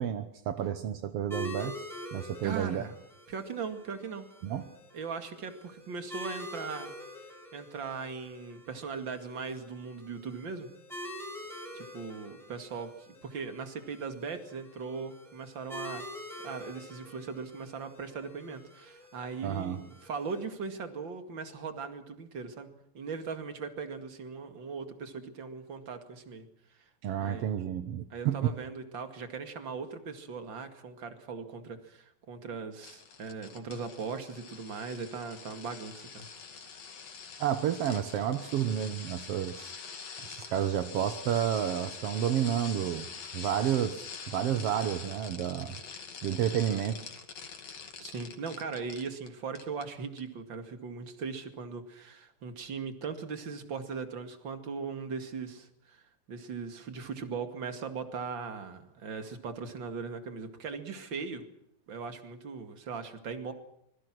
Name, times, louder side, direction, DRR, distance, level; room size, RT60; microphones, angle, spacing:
voice 1, 0.0-1.7 2.1-2.8 4.4-4.6 19.4-19.8 27.0-28.5 37.4-39.7 40.3-43.1 43.3-45.8 46.2-47.0, right 10 dB, 65° right, 10 dB, 1.5 m, -30 dB
sound 1, 1.3-20.4, left 1 dB, ahead, 6.7 m, -46 dB
voice 2, 2.4-2.9 3.3-4.3 4.9-6.9 7.5-10.7 11.7-16.0 16.4-26.5 27.2-27.5 28.1-36.3 48.0-61.4 61.9-63.5, right 5 dB, 35° right, 8 dB, 2.5 m, -39 dB
sound 2, 32.8-49.3 49.6-49.9 50.2-50.3, left 6 dB, 50° left, 3.3 m, -45 dB
25.0 x 22.5 x 6.2 m, 0.76 s
omnidirectional pair, 4.1 m